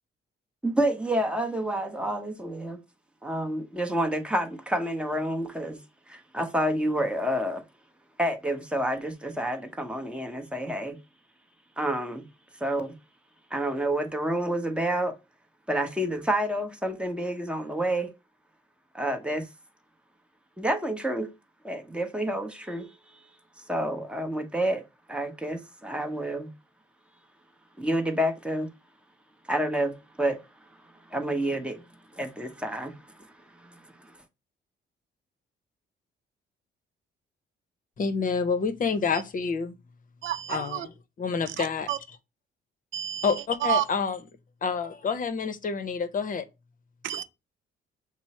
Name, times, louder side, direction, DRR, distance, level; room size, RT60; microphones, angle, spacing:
voice 1, 0.6-2.8 3.2-5.8 6.1-7.6 8.2-11.0 11.8-12.2 12.6-12.9 13.5-15.2 15.7-18.1 18.9-19.5 20.6-21.3 21.6-22.9 23.7-24.8 25.1-26.5 27.8-28.7 29.5-30.4 31.1-31.8 32.1-34.2, right 1 dB, 5° right, 0.9 m, -29 dB
voice 2, 38.0-39.7 40.5-40.8 41.2-41.9 43.2-44.2 44.6-46.4, left 5 dB, 45° left, 0.7 m, -28 dB
voice 3, 40.2-40.9 41.6-42.0 42.9-43.3 43.6-43.8 47.0-47.2, right 12 dB, 75° right, 0.5 m, -29 dB
5.9 x 2.0 x 4.2 m
cardioid pair, 90°, 20 cm